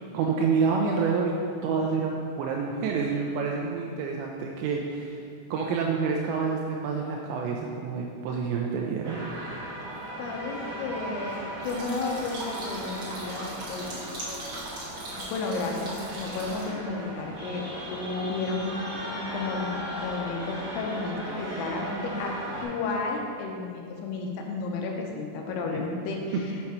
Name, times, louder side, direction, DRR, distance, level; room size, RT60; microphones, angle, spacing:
voice 1, 0.1-1.3 1.6-5.2 5.5-9.2, right 5 dB, 90° right, 0 dB, 2.5 m, -28 dB
sound 1, 9.0-22.6, right 1 dB, 55° right, 3.4 m, -37 dB
voice 2, 10.2-14.6 15.3-17.6 17.9-18.8 19.1-22.4 22.6-26.6, left 3 dB, 85° left, 0 dB, 3.5 m, -32 dB
sound 2, 11.6-16.7, right 2 dB, 70° right, 1.2 m, -39 dB
8.0 x 5.9 x 4.3 m, 2.4 s
omnidirectional pair, 5.8 m